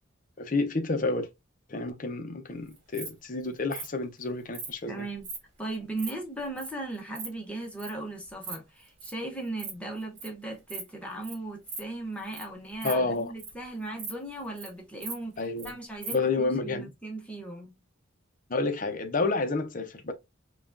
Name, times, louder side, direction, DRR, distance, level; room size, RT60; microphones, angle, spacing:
voice 1, 0.4-1.3 1.7-5.1 12.8-13.3 15.4-15.7 16.1-16.9 18.5-20.1, left 3 dB, 40° left, 0.6 m, -29 dB
Insect, 2.7-3.1 3.7-3.9 4.5-4.7 5.2-5.4 5.7-6.1 6.6-6.7 6.9-7.3 7.8-7.9 8.3-8.6 8.8-9.1 9.5-9.7 10.0-10.3 10.7-10.9 11.2-11.3 11.7-11.8 12.2-12.4 12.7-13.6 14.0-14.1 14.4-14.7 15.0-15.7 16.0-16.1, right 4 dB, 60° right, 1.4 m, -38 dB
voice 2, 4.9-5.3 5.6-17.7, right 2 dB, 5° left, 0.9 m, -37 dB
5.6 x 2.4 x 2.5 m
head